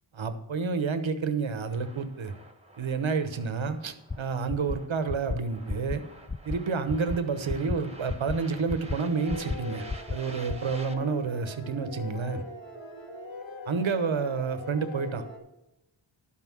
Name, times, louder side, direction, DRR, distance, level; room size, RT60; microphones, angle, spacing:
voice 1, 0.2-2.3 2.8-6.0 6.4-9.8 10.1-12.4 13.7-15.2, right 5 dB, 75° right, 10 dB, 1.1 m, -29 dB
sound 1, 1.6-10.9, right 1 dB, 15° right, 1.5 m, -50 dB
sound 2, 4.1-4.2 4.5-4.8 5.1-5.4 5.7-6.0 6.3-6.6 6.9-7.2 7.5-7.8 8.1-8.4 8.7-9.0 9.3-9.6 9.9-10.2 10.5-10.6, left 4 dB, 15° left, 0.3 m, -31 dB
sound 3, 8.9-15.4, left 2 dB, 70° left, 2.1 m, -41 dB
11.5 x 5.7 x 6.2 m, 0.89 s
cardioid pair, 40°, 47 cm